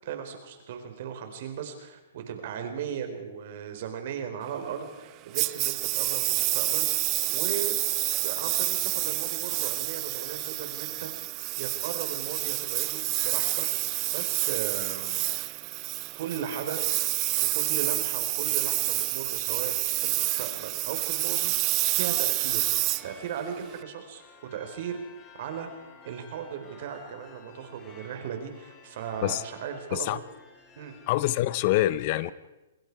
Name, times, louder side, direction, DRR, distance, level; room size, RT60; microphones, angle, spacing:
voice 1, 0.0-7.9 8.2-15.3 16.1-17.0 17.5-19.7 20.0-22.6 23.0-24.2 24.5-25.0 25.4-25.7 26.0-30.2 30.8-31.0 32.2-32.3, right 8 dB, 55° right, 6 dB, 4.3 m, -37 dB
Engine, 5.3-23.8, right 21 dB, 30° right, 0.6 m, -28 dB
sound 1, 21.9-31.7, left 5 dB, 20° left, 4.5 m, -53 dB
voice 2, 31.1-32.3, left 15 dB, 45° left, 18 dB, 0.7 m, -25 dB
28.0 x 20.5 x 4.8 m, 1.0 s
hypercardioid pair, 140°, 0 cm